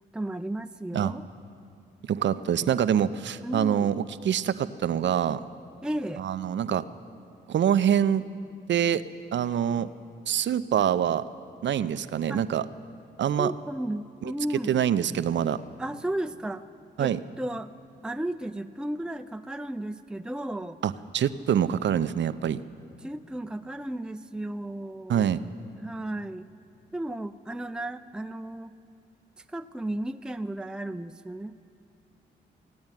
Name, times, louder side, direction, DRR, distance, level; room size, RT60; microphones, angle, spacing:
voice 1, 0.1-1.3 3.4-3.9 5.8-6.2 12.3-12.4 13.4-14.8 15.8-16.6 17.0-17.7 18.0-20.8 23.0-25.3 25.8-26.5 26.9-28.8 29.4-31.6, right 1 dB, 5° right, 9 dB, 0.5 m, -34 dB
voice 2, 2.1-5.4 6.2-6.8 7.5-8.3 8.7-9.0 9.3-9.9 10.3-11.2 11.6-12.6 13.2-13.5 14.2-14.3 14.7-15.6 17.0-17.2 20.8-22.6 25.1-25.4, right 9 dB, 65° right, 14 dB, 0.6 m, -25 dB
16.0 x 9.5 x 9.0 m, 2.4 s
supercardioid pair, 50°, 20 cm